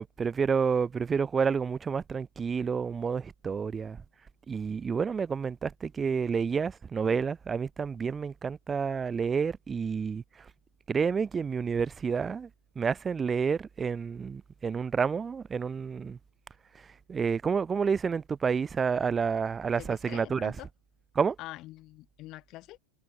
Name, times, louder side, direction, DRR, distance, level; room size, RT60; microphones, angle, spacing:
voice 1, 0.0-4.0 4.5-10.5 10.9-12.5 12.7-16.2 16.7-20.5 21.1-21.4, right 6 dB, 20° right, 1.8 m, -29 dB
voice 2, 19.8-20.7 21.4-22.8, left 17 dB, 40° left, 3.1 m, -45 dB
figure-of-eight pair, 90°, 0 cm